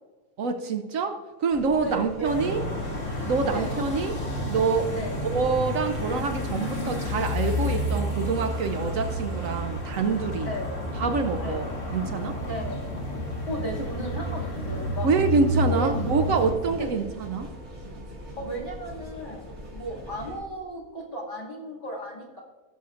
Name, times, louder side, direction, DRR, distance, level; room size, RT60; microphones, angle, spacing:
voice 1, 0.4-2.6 3.3-4.2 4.5-4.9 5.3-10.5 11.0-12.4 15.0-17.5, right 4 dB, 70° right, 7 dB, 1.1 m, -26 dB
sound 1, 1.5-20.4, equal, 50° right, 2.3 m, -42 dB
voice 2, 1.8-2.6 3.5-3.8 4.9-5.2 10.4-10.7 11.4-11.6 12.5-12.8 13.5-15.1 15.8-15.9 16.8-16.9 18.4-19.4 19.7-22.4, equal, 35° left, -5 dB, 2.4 m, -35 dB
sound 2, 2.2-16.5, left 1 dB, 60° left, 2.5 m, -30 dB
17.5 x 7.1 x 2.5 m, 1.3 s
omnidirectional pair, 1.5 m